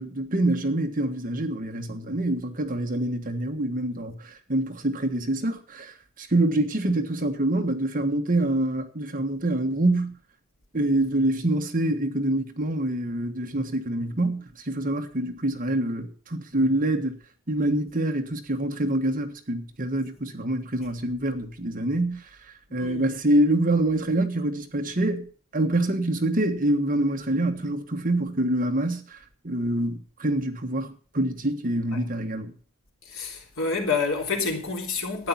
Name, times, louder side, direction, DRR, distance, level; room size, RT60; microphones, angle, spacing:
voice 1, 0.0-10.1 10.7-17.2 17.5-22.2 22.7-25.3 25.5-29.2 29.4-32.5, right 1 dB, 40° right, 1.4 m, -26 dB
voice 2, 22.7-23.1 31.9-32.0 33.1-35.3, left 4 dB, 65° left, 3.4 m, -28 dB
12.5 x 9.5 x 5.9 m
head